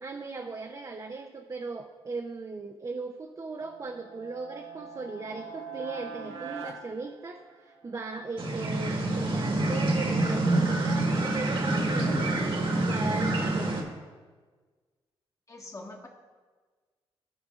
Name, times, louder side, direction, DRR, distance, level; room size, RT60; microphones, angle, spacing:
voice 1, 0.0-12.6 12.8-13.8, right 4 dB, 35° right, 3 dB, 0.6 m, -38 dB
sound 1, 3.5-7.9, right 5 dB, 80° right, 0.9 m, -43 dB
sound 2, 8.4-13.8, right 2 dB, 55° right, 1.4 m, -27 dB
voice 2, 15.5-16.1, left 2 dB, 30° left, -1 dB, 1.5 m, -43 dB
16.0 x 5.4 x 2.4 m, 1.4 s
cardioid pair, 80°, 10 cm